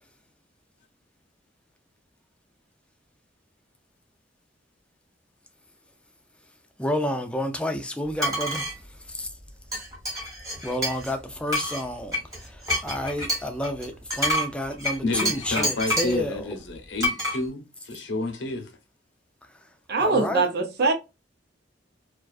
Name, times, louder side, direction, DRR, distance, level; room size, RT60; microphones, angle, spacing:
voice 1, 6.8-8.6 9.1-9.3 10.6-16.5 20.0-20.4, left 1 dB, 5° left, 0.3 m, -30 dB
sound 1, 8.2-8.7 9.7-11.1 11.5-16.2 17.0-17.4, equal, 20° right, 1.1 m, -27 dB
voice 2, 15.0-18.7, left 2 dB, 80° left, 0.7 m, -30 dB
voice 3, 19.9-20.9, right 3 dB, 60° right, 0.6 m, -22 dB
2.4 x 2.3 x 2.3 m
head